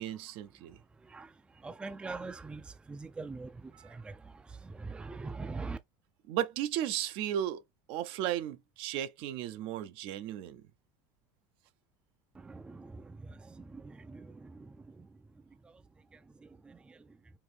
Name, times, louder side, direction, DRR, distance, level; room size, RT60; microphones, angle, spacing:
voice 1, 0.0-0.8 6.3-7.6 7.9-10.6, right 11 dB, 65° right, 0.6 m, -35 dB
voice 2, 1.0-5.8 12.3-15.2 15.6-15.8 16.1-17.2, right 3 dB, 10° right, 0.4 m, -44 dB
4.6 x 2.7 x 3.4 m
supercardioid pair, 125°, 10 cm